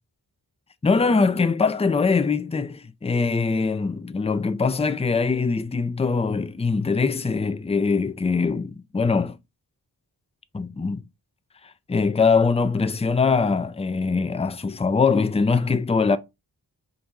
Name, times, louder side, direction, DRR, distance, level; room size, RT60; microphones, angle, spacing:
voice 1, 0.8-9.4 10.5-11.0 11.9-16.2, left 4 dB, 15° left, 0.4 m, -22 dB
3.9 x 2.6 x 4.5 m
wide cardioid pair, 50°, 41 cm